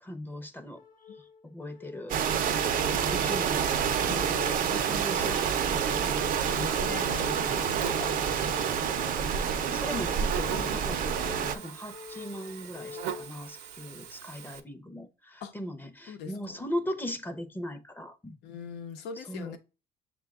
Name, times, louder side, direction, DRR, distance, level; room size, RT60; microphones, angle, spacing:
voice 1, 0.0-0.8 1.4-2.2 2.9-6.4 8.9-18.3 19.2-19.6, equal, 10° left, 0.6 m, -39 dB
sound 1, 0.7-13.7, left 6 dB, 50° left, 1.0 m, -46 dB
sound 2, 2.1-11.5, right 7 dB, 55° right, 0.6 m, -28 dB
Buzz, 3.9-14.6, right 9 dB, 90° right, 0.7 m, -43 dB
voice 2, 6.5-8.3 15.4-15.5 16.1-16.6 18.4-19.6, left 7 dB, 90° left, 0.8 m, -41 dB
6.7 x 2.2 x 3.5 m
cardioid pair, 110°, 17 cm